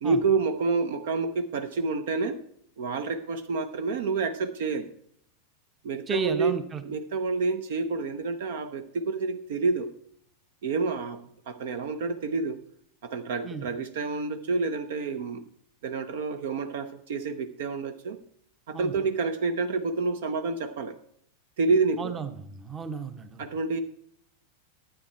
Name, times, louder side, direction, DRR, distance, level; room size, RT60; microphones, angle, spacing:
voice 1, 0.0-2.4 2.8-4.9 5.8-6.5 6.8-9.9 10.6-11.2 11.5-12.6 13.0-15.4 15.8-18.2 18.7-21.0 21.6-22.1 23.4-23.8, right 4 dB, 55° right, 10 dB, 0.8 m, -28 dB
voice 2, 6.1-6.8 13.4-13.7 18.7-18.9 22.0-23.4, right 5 dB, 20° right, 11 dB, 1.0 m, -33 dB
12.5 x 8.8 x 4.3 m, 0.65 s
figure-of-eight pair, 90°, 0 cm